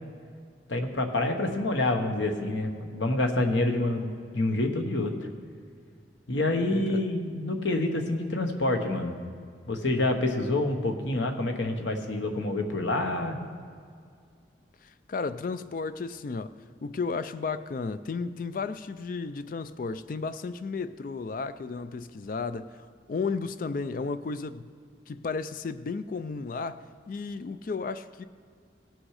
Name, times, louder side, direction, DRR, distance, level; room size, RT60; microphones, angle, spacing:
voice 1, 0.7-5.1 6.3-9.2 9.7-13.4, left 2 dB, 80° left, 1.2 m, -27 dB
voice 2, 6.6-7.1 14.8-16.5 16.8-24.7 25.1-28.2, left 4 dB, 45° left, 0.3 m, -33 dB
18.0 x 6.2 x 4.8 m
head